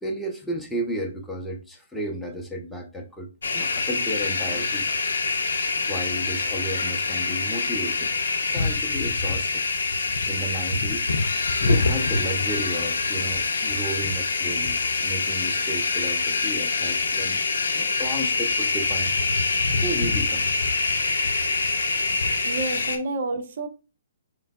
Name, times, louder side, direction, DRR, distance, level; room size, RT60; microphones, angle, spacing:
voice 1, 0.0-4.9 5.9-8.1 8.4-9.6 10.3-11.0 11.6-17.4 17.7-19.1 19.8-20.5, right 1 dB, 5° left, 0.6 m, -33 dB
sound 1, 3.4-23.0, left 3 dB, 70° left, 0.6 m, -25 dB
voice 2, 22.4-23.7, right 3 dB, 50° right, 0.6 m, -29 dB
3.8 x 3.3 x 2.3 m
figure-of-eight pair, 130°, 0 cm